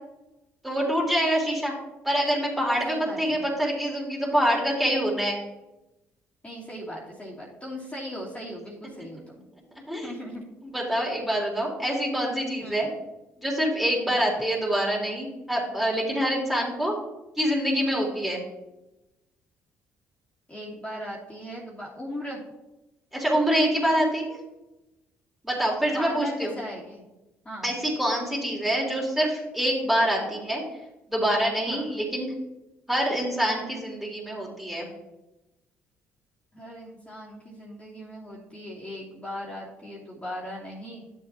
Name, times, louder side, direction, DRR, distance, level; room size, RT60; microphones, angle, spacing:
voice 1, 0.6-1.7 2.0-5.4 9.9-10.1 10.6-12.9 13.4-17.0 17.4-18.4 23.1-24.2 25.4-26.5 27.6-30.6 31.1-32.3 32.9-34.9, equal, 5° right, -3 dB, 3.4 m, -25 dB
voice 2, 2.8-3.4 6.4-9.4 10.0-10.4 12.6-12.9 14.1-14.3 20.5-22.4 25.9-27.0 27.4-27.7 31.7-31.9 36.5-41.0, equal, 20° left, -5 dB, 2.9 m, -38 dB
11.5 x 7.3 x 3.0 m, 0.98 s
hypercardioid pair, 55°, 6 cm